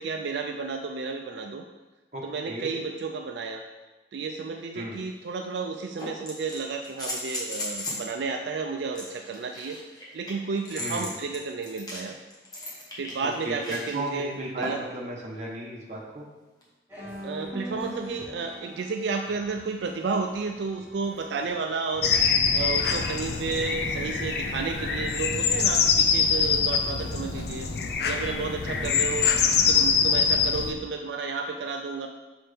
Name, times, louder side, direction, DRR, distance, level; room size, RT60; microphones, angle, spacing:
voice 1, 0.0-1.6 2.2-3.6 4.1-9.8 10.1-12.2 13.0-14.8 17.2-22.1 22.5-27.7 28.1-29.3 29.7-32.1, right 4 dB, 80° right, 4 dB, 0.4 m, -32 dB
voice 2, 2.1-2.7 4.7-5.0 10.8-11.1 13.2-16.2 28.6-29.3, right 1 dB, 40° right, -2 dB, 1.1 m, -35 dB
sound 1, 4.9-5.0 6.0-8.1 8.9-13.9 14.6-15.0 16.6-16.7, left 1 dB, 20° left, 1.3 m, -36 dB
sound 2, 16.9-24.2, equal, 15° right, 1.5 m, -44 dB
sound 3, 22.0-30.7, left 6 dB, 60° left, 0.5 m, -24 dB
6.0 x 5.5 x 3.4 m, 1.1 s
head